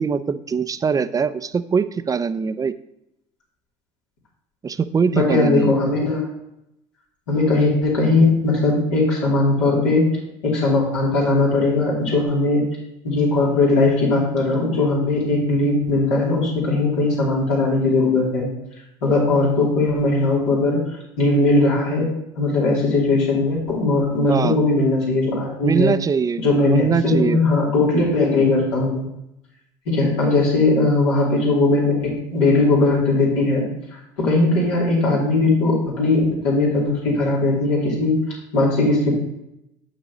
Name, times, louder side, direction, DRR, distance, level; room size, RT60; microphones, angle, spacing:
voice 1, 0.0-2.7 4.6-5.7 24.3-24.6 25.6-27.4, right 6 dB, 25° right, 13 dB, 0.4 m, -22 dB
voice 2, 5.1-6.2 7.3-10.1 10.4-12.6 13.0-18.5 19.0-20.8 21.2-22.0 22.4-25.9 26.4-29.1 29.8-33.6 33.9-38.2 38.5-39.1, left 2 dB, 80° left, -5 dB, 3.0 m, -19 dB
7.6 x 6.8 x 3.0 m, 0.85 s
hypercardioid pair, 70°, 15 cm